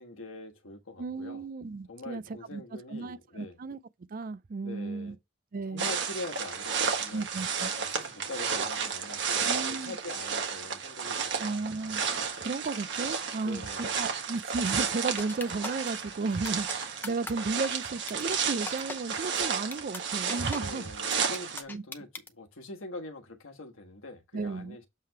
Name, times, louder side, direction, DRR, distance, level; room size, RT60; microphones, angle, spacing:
voice 1, 0.0-1.5 1.9-3.6 4.6-5.2 5.7-7.3 7.8-11.7 13.4-14.1 20.6-24.9, left 2 dB, 75° left, 1.4 m, -43 dB
voice 2, 1.0-2.6 2.9-3.8 4.1-5.2 5.5-5.9 7.1-7.7 9.5-10.0 11.4-12.0 12.4-20.9 21.7-21.8 24.3-24.8, right 3 dB, 45° right, 0.4 m, -34 dB
sound 1, 5.8-21.6, right 6 dB, 60° right, 1.5 m, -32 dB
sound 2, 15.2-15.9 16.4-16.7 17.0-17.3 17.6-17.7 18.1-18.4 18.7-19.0 19.4-19.5 19.7-20.0 20.3-20.6 21.1-22.3, left 2 dB, 10° left, 0.7 m, -38 dB
7.5 x 3.3 x 4.6 m
head